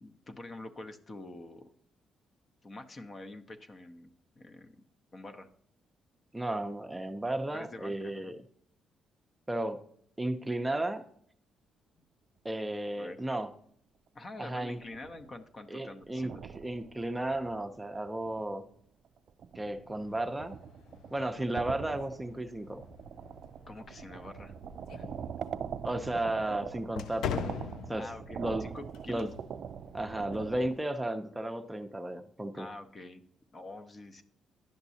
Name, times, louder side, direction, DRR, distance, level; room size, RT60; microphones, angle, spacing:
voice 1, 0.0-1.7 2.6-4.1 4.4-4.8 5.1-5.5 7.5-8.3 13.0-13.2 14.1-16.4 23.7-24.5 25.0-25.1 28.0-29.3 32.5-33.2 33.5-34.2, left 2 dB, 35° left, 7 dB, 0.7 m, -46 dB
voice 2, 6.3-8.4 9.5-9.8 10.2-11.1 12.4-13.5 14.4-14.8 15.7-18.6 19.5-20.6 21.1-22.8 25.8-28.1 28.4-28.6 29.1-29.3 29.9-32.7, right 1 dB, 10° right, 6 dB, 0.6 m, -34 dB
sound 1, 14.7-15.4 15.9-18.6 19.0-30.7, right 8 dB, 60° right, 0.3 m, -43 dB
sound 2, 19.9-30.8, left 8 dB, 80° left, 0.3 m, -44 dB
10.5 x 6.0 x 2.8 m, 0.63 s
cardioid pair, 90°, 0 cm